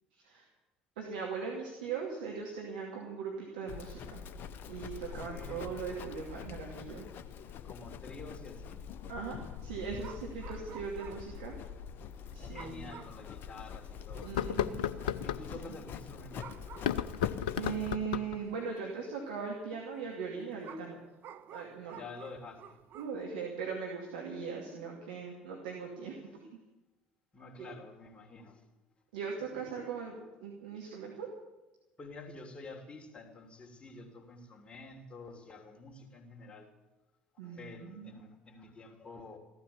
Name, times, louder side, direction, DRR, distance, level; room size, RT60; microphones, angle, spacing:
voice 1, 0.1-0.5 1.0-4.2 4.7-7.1 9.1-11.6 12.3-12.9 14.2-14.9 15.5-15.8 17.1-17.2 17.6-21.0 21.5-22.0 22.9-26.4 27.6-27.7 29.1-31.3 37.4-38.2, right 5 dB, 70° right, -1 dB, 2.6 m, -40 dB
Livestock farm animals working animals, 3.7-18.0, left 7 dB, 45° left, 0.9 m, -44 dB
voice 2, 5.1-5.7 7.6-8.8 12.5-14.3 15.2-16.6 17.3-17.5 21.8-22.8 27.3-28.6 29.4-29.7 32.0-36.7 37.4-39.4, left 3 dB, 25° left, 2 dB, 3.2 m, -49 dB
sound 1, 6.3-6.6 6.9-7.0 7.3-7.5 8.3-8.6 10.0-11.4 11.7-11.8 12.5-13.3 13.7-13.8 14.2-14.7 16.0-16.1 16.4-17.4 18.2-18.3 20.6-23.2, right 8 dB, 45° right, 1.0 m, -51 dB
sound 2, 11.0-11.1 12.3-12.4 12.9-13.0 14.2-15.4 16.7-18.4, left 10 dB, 70° left, 0.6 m, -33 dB
15.5 x 13.0 x 7.2 m, 1.0 s
figure-of-eight pair, 60°, 5 cm